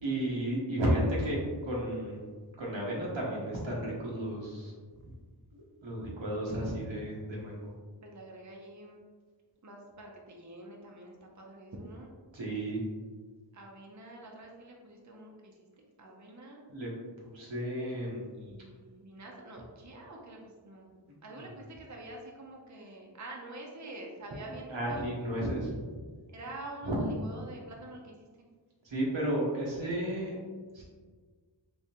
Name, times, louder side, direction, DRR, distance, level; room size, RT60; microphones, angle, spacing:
voice 1, 0.0-2.3 2.6-4.7 5.5-7.7 12.3-12.8 16.7-16.9 17.2-18.3 21.1-21.4 24.7-25.8 26.8-27.0 28.8-30.4 30.7-30.8, right 1 dB, 90° right, -4 dB, 1.0 m, -33 dB
voice 2, 8.0-9.0 9.6-12.1 13.5-16.6 18.3-25.1 26.3-28.5, right 2 dB, 40° right, 0 dB, 0.6 m, -47 dB
3.5 x 3.0 x 2.8 m, 1.5 s
wide cardioid pair, 45°, 44 cm